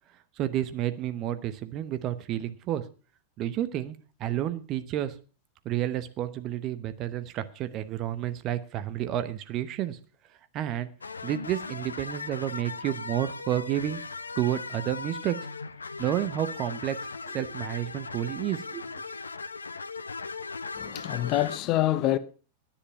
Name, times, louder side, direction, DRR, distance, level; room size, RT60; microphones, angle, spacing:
voice 1, 0.4-2.8 3.4-5.1 5.6-10.0 10.5-10.9 11.2-14.0 14.4-15.5 16.0-18.9, right 12 dB, 35° right, 0.9 m, -30 dB
sound 1, 11.0-21.6, left 4 dB, 75° left, 0.5 m, -38 dB
voice 2, 20.8-22.2, left 14 dB, 40° left, 0.8 m, -26 dB
10.0 x 10.0 x 5.6 m
figure-of-eight pair, 90°, 0 cm